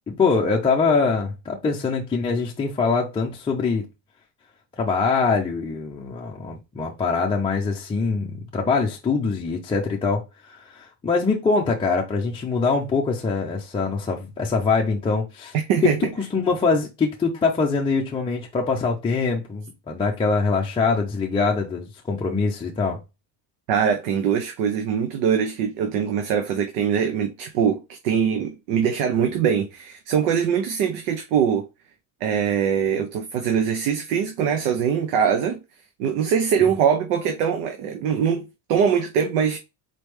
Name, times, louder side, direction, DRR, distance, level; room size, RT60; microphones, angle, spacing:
voice 1, 0.1-3.8 4.8-15.5 15.8-23.0, left 4 dB, 10° left, 0.5 m, -23 dB
voice 2, 15.5-16.0 23.7-31.7 32.2-35.6 36.0-39.6, right 7 dB, 85° right, 0.9 m, -22 dB
4.3 x 3.3 x 3.2 m
cardioid pair, 145°, 44 cm